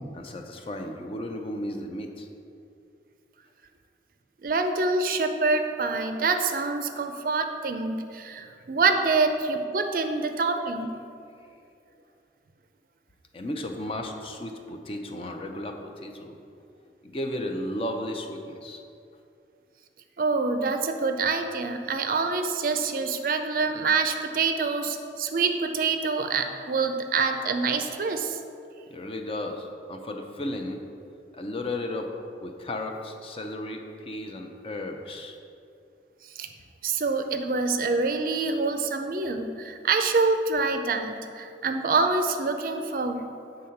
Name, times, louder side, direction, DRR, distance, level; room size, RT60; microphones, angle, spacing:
voice 1, 0.1-2.3 13.3-16.4 17.0-18.8 28.9-30.8 31.3-32.1 32.4-35.4, left 1 dB, 30° left, 4 dB, 0.5 m, -34 dB
voice 2, 4.4-11.0 20.2-28.4 36.3-36.5 36.8-43.3, right 4 dB, 50° right, 6 dB, 0.4 m, -26 dB
8.0 x 3.7 x 5.7 m, 2.5 s
head